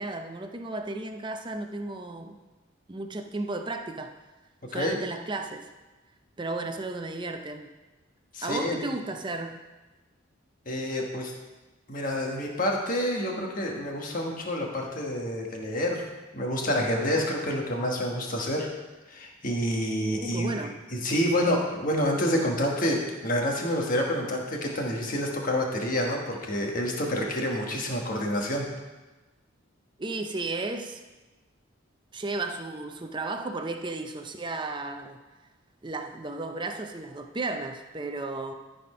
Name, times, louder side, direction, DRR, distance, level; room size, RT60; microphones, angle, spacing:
voice 1, 0.0-2.4 2.9-4.1 4.7-5.7 6.4-7.8 8.4-9.5 20.2-20.8 30.0-31.0 32.1-35.2 35.8-38.5, right 2 dB, 25° right, 5 dB, 0.5 m, -34 dB
voice 2, 8.3-8.8 10.6-11.3 11.9-16.0 16.3-18.7 19.1-28.6, equal, 40° left, 0 dB, 1.4 m, -28 dB
13.0 x 4.3 x 5.5 m, 1.2 s
head